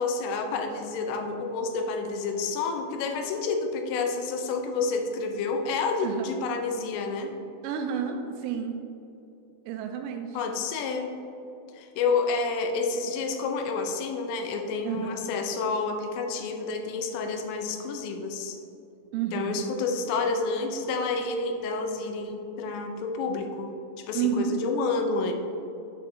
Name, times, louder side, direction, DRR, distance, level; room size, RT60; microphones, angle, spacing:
voice 1, 0.0-7.3 10.3-11.2 11.7-18.6 19.3-23.7 24.0-25.5, left 4 dB, 80° left, 4 dB, 3.1 m, -29 dB
voice 2, 7.6-8.8 9.7-10.4 14.8-15.2 19.1-19.6 24.1-24.5, right 8 dB, 85° right, 4 dB, 2.8 m, -30 dB
8.2 x 5.7 x 2.6 m, 2.9 s
omnidirectional pair, 5.9 m